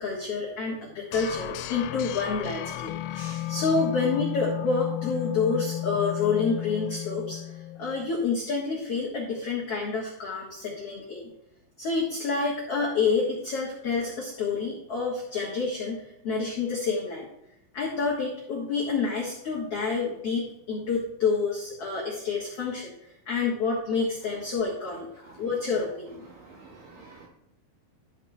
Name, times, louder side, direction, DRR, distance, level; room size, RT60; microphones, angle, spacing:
voice 1, 0.0-7.4 7.8-11.3 11.8-17.3 17.7-22.9 23.2-26.2, left 4 dB, 65° left, -5 dB, 1.5 m, -28 dB
sound 1, 1.1-8.1, left 14 dB, 85° left, 2.8 m, -33 dB
voice 2, 26.3-27.3, right 4 dB, 65° right, -2 dB, 2.2 m, -49 dB
13.0 x 5.6 x 3.3 m, 0.82 s
omnidirectional pair, 5.2 m